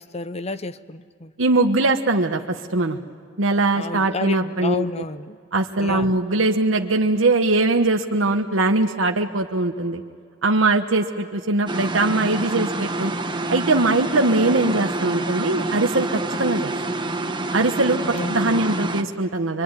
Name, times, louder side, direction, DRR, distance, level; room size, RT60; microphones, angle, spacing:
voice 1, 0.0-1.3 3.6-5.4 5.8-6.1 18.1-18.6, left 3 dB, 35° left, 13 dB, 0.8 m, -31 dB
voice 2, 1.4-3.0 3.4-4.8 5.5-10.0 10.4-13.1 13.5-16.7 17.5-18.0 18.3-19.6, right 2 dB, 80° right, 3 dB, 1.2 m, -21 dB
sound 1, 11.7-19.0, right 2 dB, 25° right, 1.2 m, -27 dB
25.0 x 24.5 x 9.7 m, 2.3 s
head